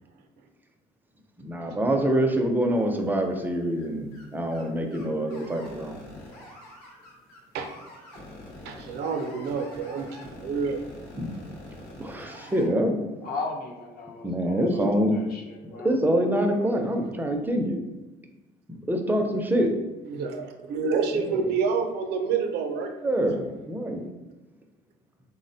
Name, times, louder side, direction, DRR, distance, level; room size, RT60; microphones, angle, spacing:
voice 1, 1.4-6.0 11.2-11.3 12.0-13.0 14.2-15.1 15.8-17.8 18.7-19.7 21.1-21.4 23.0-24.0, right 1 dB, 10° right, 4 dB, 0.4 m, -25 dB
sound 1, 2.7-3.4 3.7-3.8 4.1-4.2 4.5-4.7 4.9-12.7, left 1 dB, 85° left, 0.9 m, -45 dB
voice 2, 8.6-10.8 20.1-22.9, right 5 dB, 75° right, 5 dB, 0.4 m, -28 dB
voice 3, 13.2-15.9, left 3 dB, 60° left, 2 dB, 0.6 m, -37 dB
3.5 x 2.0 x 2.6 m, 1.1 s
cardioid pair, 110°, 17 cm